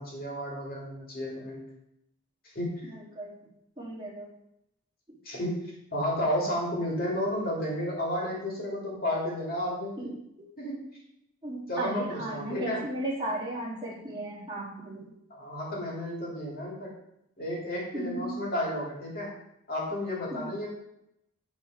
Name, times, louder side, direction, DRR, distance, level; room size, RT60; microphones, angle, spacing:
voice 1, 0.0-1.6 2.5-2.8 5.2-5.6 5.9-10.1 10.6-10.8 11.7-12.8 15.3-16.9 17.4-19.3 19.7-20.7, left 1 dB, 45° left, -3 dB, 2.6 m, -32 dB
voice 2, 2.9-3.3 3.8-4.3 10.0-10.1 11.4-15.1 17.9-18.4 20.3-20.5, right 1 dB, 20° right, -5 dB, 1.7 m, -35 dB
9.2 x 4.2 x 4.7 m, 0.79 s
head